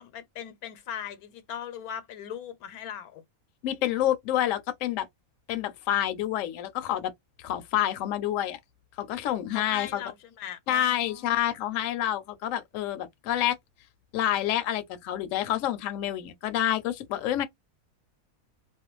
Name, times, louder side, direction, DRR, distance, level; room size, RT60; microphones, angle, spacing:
voice 1, 0.0-3.2 9.5-11.4, left 9 dB, 90° left, 1.1 m, -39 dB
voice 2, 3.6-5.1 5.5-7.1 7.4-8.6 9.0-10.0 10.7-13.6 14.1-17.5, left 12 dB, 70° left, 0.9 m, -28 dB
2.4 x 2.2 x 2.9 m
omnidirectional pair, 1.5 m